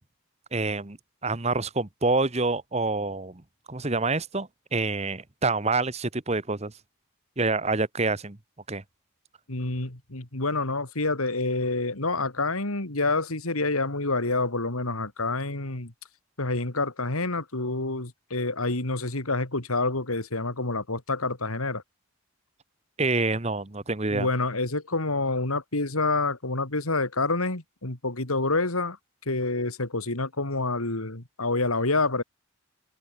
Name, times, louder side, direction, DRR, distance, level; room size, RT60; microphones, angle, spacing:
voice 1, 0.5-1.0 1.2-3.4 3.7-6.7 7.4-8.4 8.7-8.8 23.0-24.3, right 3 dB, 30° right, 1.2 m, -27 dB
voice 2, 9.5-15.9 16.4-21.8 24.1-29.0 29.2-32.2, left 3 dB, 90° left, 3.3 m, -27 dB
head